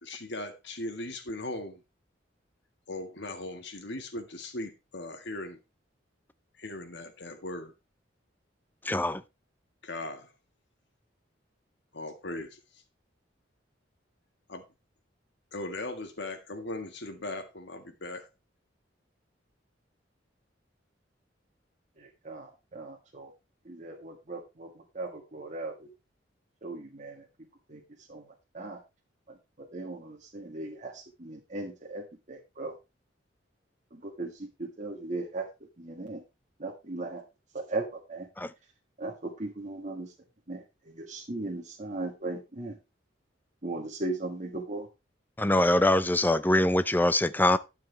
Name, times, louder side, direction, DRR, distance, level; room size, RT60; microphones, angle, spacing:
voice 1, 0.0-1.8 2.9-5.6 6.6-7.7 9.8-10.3 11.9-12.6 14.5-14.6 15.5-18.3, left 2 dB, 65° left, 1.8 m, -38 dB
voice 2, 8.8-9.2 38.4-38.5 45.4-47.6, left 1 dB, 10° left, 0.5 m, -23 dB
voice 3, 22.0-23.3 23.7-25.9 26.6-27.3 27.7-27.8 28.1-28.8 29.3-32.7 33.9-35.5 35.8-36.2 36.6-37.2 37.5-38.3 39.0-40.1 40.5-42.8 43.6-44.9, right 2 dB, 40° right, 1.7 m, -38 dB
12.0 x 7.1 x 3.4 m
head